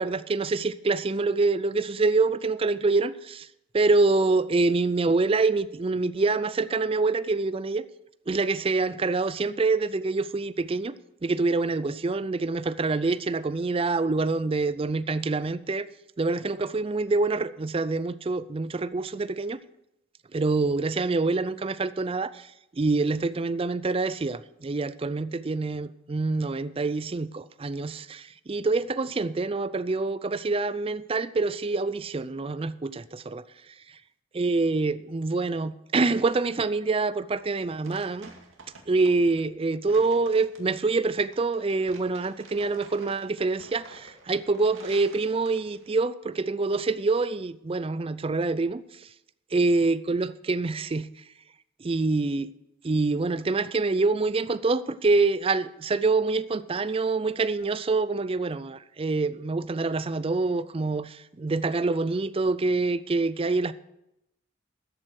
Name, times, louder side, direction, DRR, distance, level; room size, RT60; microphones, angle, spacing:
voice 1, 0.0-3.5 3.7-7.8 8.3-10.9 11.2-15.9 16.2-19.6 20.3-33.4 34.3-38.3 38.9-49.1 49.5-51.1 51.8-52.5 52.8-63.7, right 3 dB, 25° right, 0.4 m, -26 dB
sound 1, 37.3-45.9, right 3 dB, 70° right, 2.2 m, -50 dB
14.0 x 7.7 x 6.4 m
head